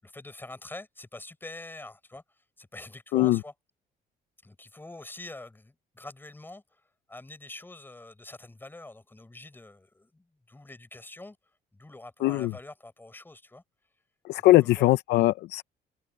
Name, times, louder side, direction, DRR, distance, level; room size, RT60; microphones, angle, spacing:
voice 1, 0.0-3.5 4.4-6.8 7.1-11.4 11.7-13.6 14.6-14.9, left 2 dB, 10° left, 5.7 m, -45 dB
voice 2, 12.2-12.5 14.2-15.6, left 17 dB, 80° left, 0.6 m, -21 dB
cardioid pair, 110°, 17 cm